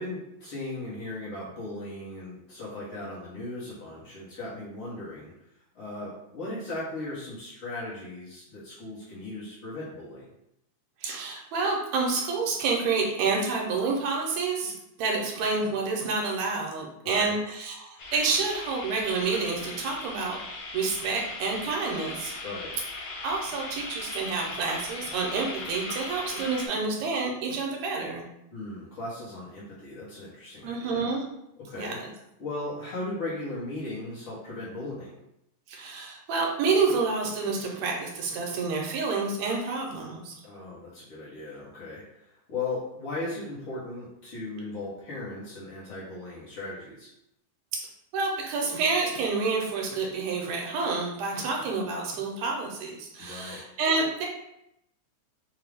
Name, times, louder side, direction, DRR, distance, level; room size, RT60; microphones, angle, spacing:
voice 1, 0.0-5.3 5.7-10.3 17.2-17.3 22.4-22.7 28.5-31.1 31.6-32.0 32.4-35.2 40.4-47.1 53.2-53.6, left 2 dB, 60° left, -8 dB, 1.6 m, -37 dB
voice 2, 11.0-22.4 23.2-28.2 30.6-31.2 31.7-31.9 35.7-40.4 48.1-54.3, right 4 dB, 80° right, 0 dB, 1.9 m, -28 dB
sound 1, 18.0-26.7, left 3 dB, 90° left, 2.3 m, -39 dB
4.9 x 2.3 x 3.3 m, 0.81 s
omnidirectional pair, 3.3 m